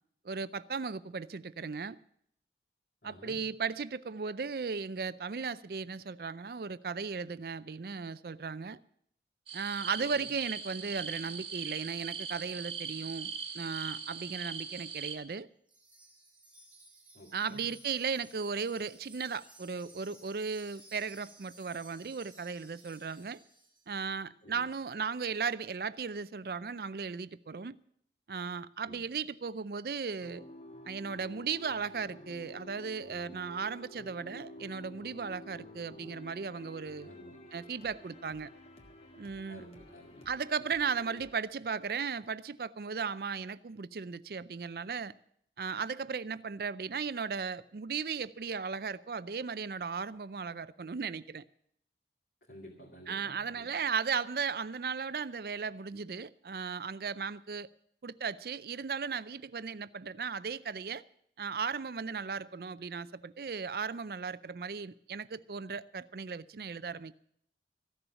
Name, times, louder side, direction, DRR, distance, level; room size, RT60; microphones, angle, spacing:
voice 1, 0.2-2.0 3.0-8.8 9.5-15.5 17.3-23.4 23.9-27.8 28.3-30.4 30.9-37.1 37.5-38.5 39.2-39.7 40.3-45.1 45.6-51.4 53.1-57.7 58.0-61.0 61.4-67.1, right 5 dB, 55° right, 0.4 m, -36 dB
voice 2, 3.0-3.4 17.1-17.6 24.4-24.6 28.9-29.0 37.1-37.4 39.5-40.3 52.5-53.6, equal, 65° left, 2.3 m, -52 dB
sound 1, 9.5-15.2, right 6 dB, 30° right, 1.6 m, -40 dB
Wind chime, 15.7-23.9, right 2 dB, 10° right, 2.1 m, -57 dB
sound 2, 30.2-41.3, equal, 35° left, 1.6 m, -51 dB
15.0 x 7.0 x 9.8 m
head